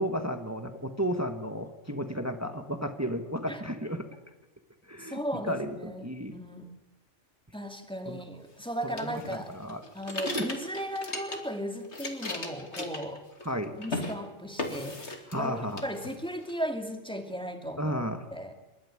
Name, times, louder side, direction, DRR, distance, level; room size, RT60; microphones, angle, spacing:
voice 1, 0.0-4.1 4.9-6.3 8.0-8.2 8.8-9.8 10.2-10.5 13.4-13.8 15.3-15.8 17.8-18.2, equal, 15° right, 6 dB, 1.4 m, -33 dB
voice 2, 5.0-6.7 7.5-9.5 9.9-13.2 13.8-15.5 15.8-18.0 18.3-18.5, equal, 5° left, 5 dB, 2.2 m, -36 dB
sound 1, 9.0-11.6 11.8-13.5 13.8-14.1 14.6-15.5 15.8-16.5, left 2 dB, 65° left, 2.9 m, -36 dB
27.0 x 13.5 x 9.8 m, 1.1 s
omnidirectional pair, 1.2 m